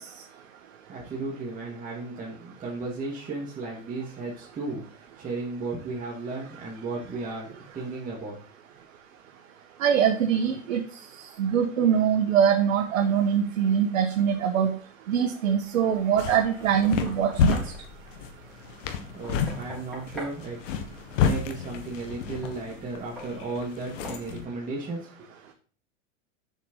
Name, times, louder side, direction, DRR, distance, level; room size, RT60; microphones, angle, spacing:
voice 1, 0.9-8.4 19.1-20.6 21.2-25.3, right 3 dB, 20° right, -5 dB, 2.5 m, -35 dB
voice 2, 9.8-10.8 11.4-14.7 15.1-17.6, right 8 dB, 85° right, 3 dB, 1.5 m, -23 dB
sound 1, 15.9-24.4, left 6 dB, 65° left, 1.7 m, -30 dB
Knock, 16.6-17.8 19.2-20.4 22.4-22.6 23.2-23.4 24.0-24.3, equal, ahead, 4.5 m, -42 dB
7.3 x 6.5 x 5.6 m, 0.41 s
supercardioid pair, 130°, 39 cm